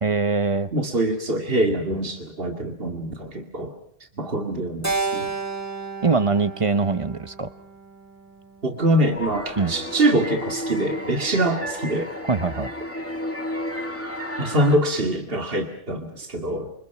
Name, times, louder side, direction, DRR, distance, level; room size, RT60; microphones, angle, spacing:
voice 1, 0.0-0.7 6.0-7.5 9.6-9.7 12.2-12.7, right 4 dB, 30° right, 12 dB, 1.1 m, -22 dB
voice 2, 0.7-3.7 4.2-5.3 8.6-12.1 14.4-16.7, right 1 dB, 55° right, 4 dB, 2.5 m, -24 dB
Keyboard (musical), 4.8-9.2, right 3 dB, 15° right, 1.6 m, -32 dB
sound 1, 9.0-14.8, left 1 dB, 10° left, 2.3 m, -32 dB
28.0 x 25.0 x 5.9 m, 0.64 s
omnidirectional pair, 1.1 m